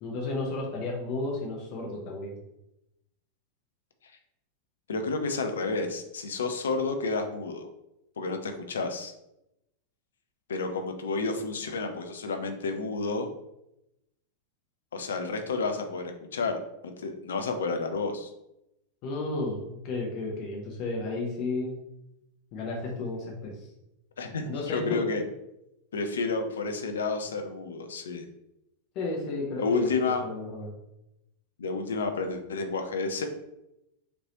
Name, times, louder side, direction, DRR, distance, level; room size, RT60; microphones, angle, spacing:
voice 1, 0.0-2.4 19.0-21.8 22.5-23.7 24.4-25.0 28.9-29.9 30.2-30.7, left 2 dB, 40° left, -1 dB, 0.9 m, -33 dB
voice 2, 4.9-7.7 8.2-9.1 10.5-13.3 14.9-18.3 24.2-25.2 25.9-28.2 29.6-30.2 31.6-33.3, left 4 dB, 65° left, 6 dB, 0.6 m, -30 dB
5.1 x 3.1 x 3.0 m, 0.87 s
figure-of-eight pair, 90°, 0 cm